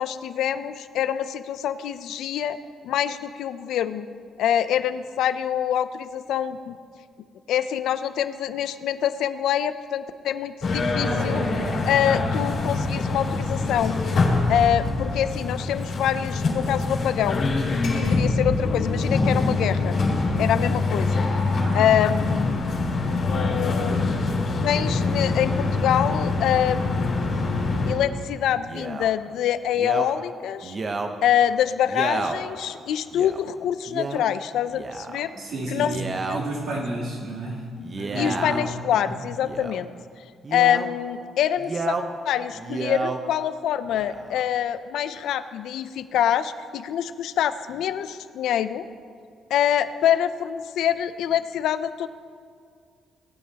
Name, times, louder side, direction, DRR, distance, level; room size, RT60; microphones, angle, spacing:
voice 1, 0.0-2.6 2.8-4.1 4.4-6.8 7.5-11.4 11.9-14.0 14.5-17.4 17.7-20.0 20.4-21.3 21.7-22.6 23.1-24.1 24.5-27.2 27.9-30.8 31.2-35.3 35.7-36.0 36.3-36.5 38.1-39.9 40.5-42.0 42.3-48.9 49.5-52.1, left 10 dB, 80° left, 13 dB, 0.5 m, -25 dB
sound 1, 10.6-27.9, left 3 dB, 65° left, 3.3 m, -24 dB
voice 2, 21.5-21.9 35.3-36.1 36.3-38.7 39.1-39.2, right 1 dB, 70° right, -5 dB, 3.0 m, -31 dB
Male speech man speaking, 28.7-29.1 29.7-30.1 30.6-31.1 31.8-32.4 33.1-33.4 33.9-34.2 34.7-35.3 35.8-36.4 37.8-38.7 39.4-39.8 40.4-40.9 41.6-42.1 42.5-43.2 43.9-44.4, right 3 dB, 40° right, 0.9 m, -31 dB
18.5 x 9.3 x 2.9 m, 2.1 s
cardioid pair, 90°, 0 cm